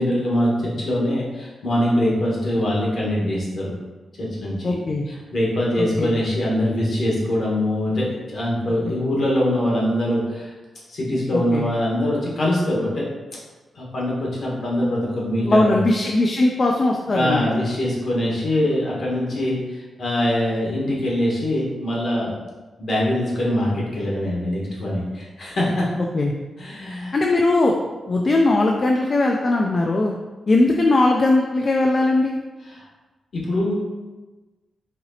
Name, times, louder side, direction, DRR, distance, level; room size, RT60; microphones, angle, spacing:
voice 1, 0.0-3.7 4.2-4.7 5.1-10.5 10.9-13.1 13.7-15.8 17.1-22.3 22.8-25.9 26.6-27.1 32.7-32.9 33.3-33.7, left 1 dB, 60° left, -4 dB, 1.2 m, -23 dB
voice 2, 4.6-5.0 5.8-6.1 11.3-11.7 15.4-17.4 26.1-26.3 27.1-27.8 28.1-30.1 30.5-32.4, left 2 dB, 40° left, 0 dB, 0.3 m, -19 dB
4.2 x 2.9 x 2.7 m, 1.2 s
cardioid pair, 100°, 0 cm